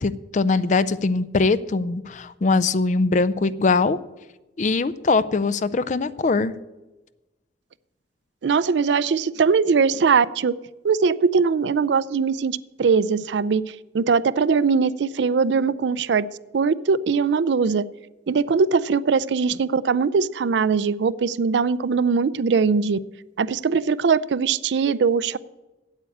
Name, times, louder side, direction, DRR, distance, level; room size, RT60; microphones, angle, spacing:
voice 1, 0.0-4.0 4.6-6.5, left 3 dB, 40° left, 14 dB, 0.4 m, -21 dB
voice 2, 8.4-10.5 10.8-16.3 16.5-17.9 18.3-23.0 23.4-25.4, right 5 dB, 70° right, 18 dB, 0.4 m, -21 dB
8.7 x 8.4 x 8.4 m, 1.1 s
head